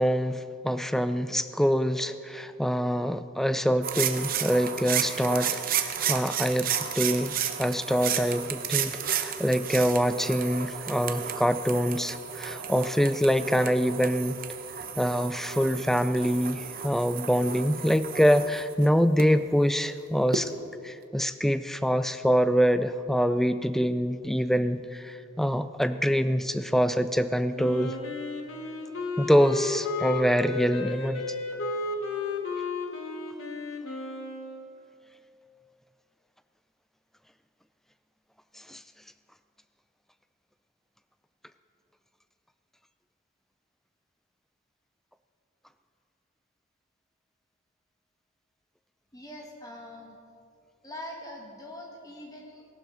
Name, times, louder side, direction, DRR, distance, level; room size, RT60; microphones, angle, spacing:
voice 1, 0.0-14.4 15.0-20.5 20.8-28.0 29.2-31.2 38.7-38.8, equal, ahead, 12 dB, 0.3 m, -25 dB
sound 1, 3.8-19.2 20.3-20.4, right 8 dB, 45° right, 0.7 m, -32 dB
Wind instrument woodwind instrument, 27.5-34.7, left 3 dB, 75° left, 1.3 m, -33 dB
voice 2, 49.1-50.2 50.8-52.7, left 1 dB, 20° left, 0 dB, 1.7 m, -43 dB
17.5 x 11.5 x 3.9 m, 2.5 s
head